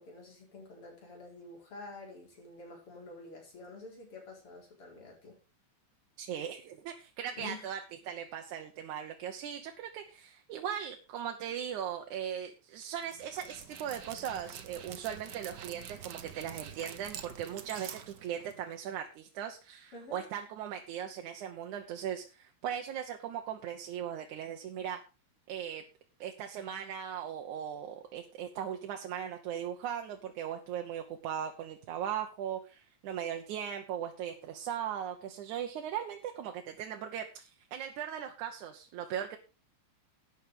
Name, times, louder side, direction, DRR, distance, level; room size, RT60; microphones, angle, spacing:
voice 1, 0.0-5.4 7.4-7.7 19.9-20.3, left 2 dB, 45° left, 0 dB, 5.7 m, -48 dB
voice 2, 6.2-7.8 8.1-25.0 25.5-25.8 26.2-39.4, right 9 dB, 85° right, 4 dB, 2.6 m, -38 dB
Dog, 13.0-18.8, right 8 dB, 65° right, 1.0 m, -47 dB
12.0 x 9.3 x 5.0 m, 0.32 s
omnidirectional pair, 3.3 m